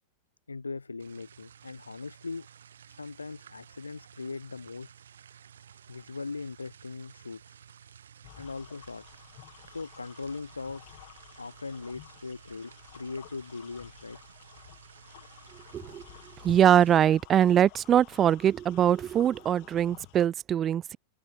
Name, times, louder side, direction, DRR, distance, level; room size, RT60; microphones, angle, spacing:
voice 1, 0.5-2.5 2.9-4.9 5.9-7.6 8.4-9.3 9.6-11.0 11.4-14.2, left 4 dB, 80° left, 6.1 m, -40 dB
sound 1, 1.0-17.0, right 8 dB, 65° right, 6.1 m, -54 dB
sound 2, 8.2-20.3, left 28 dB, 45° left, 7.6 m, -52 dB
voice 2, 16.4-21.0, right 10 dB, 25° right, 1.2 m, -23 dB
open air
figure-of-eight pair, 90°, 0 cm